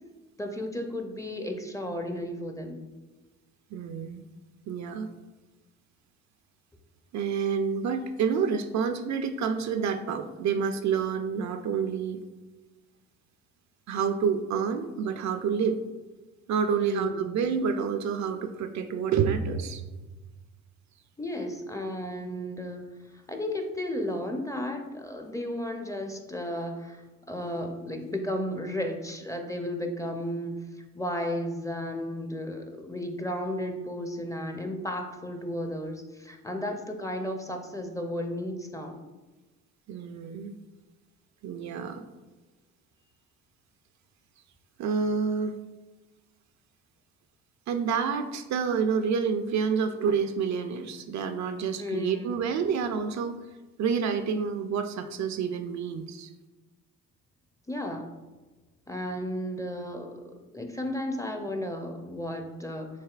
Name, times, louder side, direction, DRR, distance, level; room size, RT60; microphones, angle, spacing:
voice 1, 0.4-2.8 16.7-17.3 21.2-22.9 23.1-27.0 27.3-30.6 30.9-39.0 51.8-52.4 57.7-58.1 58.9-62.9, left 1 dB, 10° left, 4 dB, 0.5 m, -34 dB
voice 2, 3.7-4.2 4.7-5.1 7.1-12.2 13.9-15.8 16.5-19.8 39.9-40.5 41.4-42.0 44.8-45.6 47.7-53.4 53.8-56.3, right 6 dB, 55° right, 7 dB, 0.4 m, -28 dB
6.6 x 2.7 x 2.4 m, 1.2 s
supercardioid pair, 60°, 35 cm